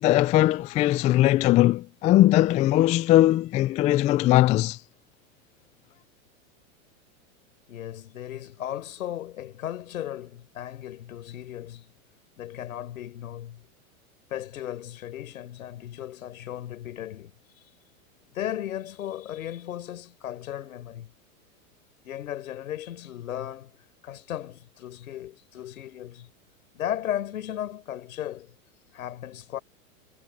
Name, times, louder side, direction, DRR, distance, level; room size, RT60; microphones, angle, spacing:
voice 1, 0.0-4.8, left 15 dB, 20° left, 0.3 m, -20 dB
voice 2, 7.7-11.9 12.4-13.7 14.3-17.3 18.3-21.1 22.0-23.8 24.0-26.3 26.7-28.5 28.9-29.6, left 11 dB, 80° left, 5.5 m, -36 dB
hypercardioid pair, 120°, 41 cm